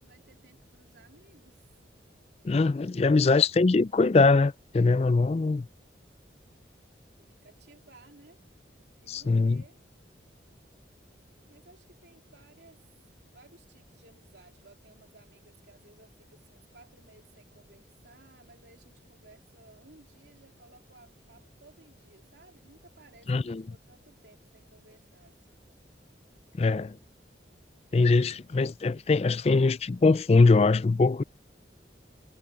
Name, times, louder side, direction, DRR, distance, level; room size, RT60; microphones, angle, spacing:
voice 1, 0.0-1.8 2.9-3.4 7.2-8.4 9.0-9.8 11.5-12.8 13.3-25.7, right 2 dB, 70° right, 3.2 m, -58 dB
voice 2, 2.4-5.7 9.1-9.6 23.3-23.6 26.6-27.0 27.9-31.2, left 3 dB, 35° left, 0.3 m, -22 dB
head